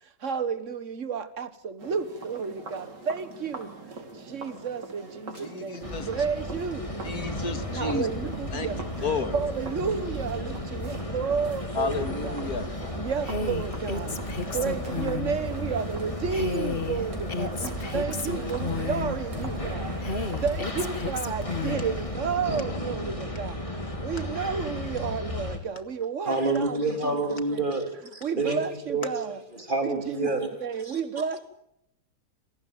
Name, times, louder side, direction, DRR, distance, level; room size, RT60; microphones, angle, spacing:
voice 1, 0.2-3.7 4.1-6.9 7.7-8.8 9.3-12.5 12.9-14.2 14.5-27.6 28.2-29.4 29.8-31.4, right 6 dB, 45° right, 1.8 m, -32 dB
sound 1, 1.8-21.1, right 3 dB, 80° right, 4.5 m, -42 dB
voice 2, 5.4-6.1 7.0-8.1 8.5-8.7 9.0-9.3 11.7-12.7, left 4 dB, 60° left, 2.5 m, -31 dB
sound 2, 5.8-25.6, left 1 dB, 20° left, 2.9 m, -34 dB
Female speech woman speaking, 13.2-15.4 16.3-19.2 20.0-21.9, left 4 dB, 35° left, 1.6 m, -33 dB
voice 3, 26.3-28.6 28.9-29.1 29.5-30.5 30.9-31.0, right 3 dB, 25° right, 3.6 m, -28 dB
27.5 x 17.5 x 9.0 m
omnidirectional pair, 1.9 m